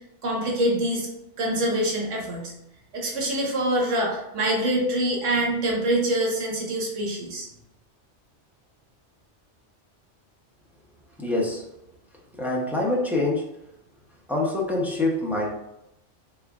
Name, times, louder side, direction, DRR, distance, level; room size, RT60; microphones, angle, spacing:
voice 1, 0.2-1.1 1.4-2.5 2.9-7.5, right 1 dB, 85° right, -1 dB, 1.2 m, -25 dB
voice 2, 11.2-11.7 12.4-13.6 14.3-15.5, left 2 dB, ahead, -4 dB, 0.4 m, -25 dB
3.6 x 3.3 x 2.3 m, 0.85 s
omnidirectional pair, 1.2 m